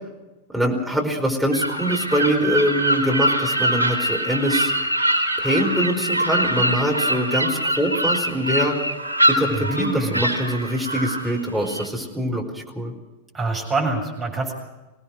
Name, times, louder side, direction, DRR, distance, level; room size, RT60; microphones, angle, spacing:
voice 1, 0.5-4.7 5.4-8.7 9.3-12.9, equal, ahead, -1 dB, 4.9 m, -23 dB
sound 1, 1.5-11.9, right 1 dB, 85° left, 3.5 m, -23 dB
voice 2, 9.5-10.2 13.3-14.5, right 3 dB, 20° right, 1 dB, 7.3 m, -25 dB
24.0 x 18.5 x 6.4 m, 1.1 s
figure-of-eight pair, 90°, 0 cm